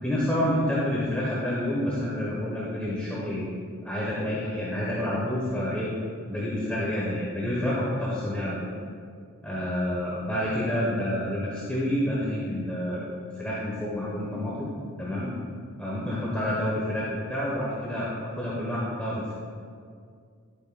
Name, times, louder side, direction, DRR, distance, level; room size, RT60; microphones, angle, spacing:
voice 1, 0.0-3.5 3.8-5.9 6.3-8.7 9.4-14.7 15.0-15.3 15.8-19.3, left 1 dB, 5° left, -7 dB, 1.1 m, -28 dB
11.0 x 8.6 x 2.3 m, 2.2 s
head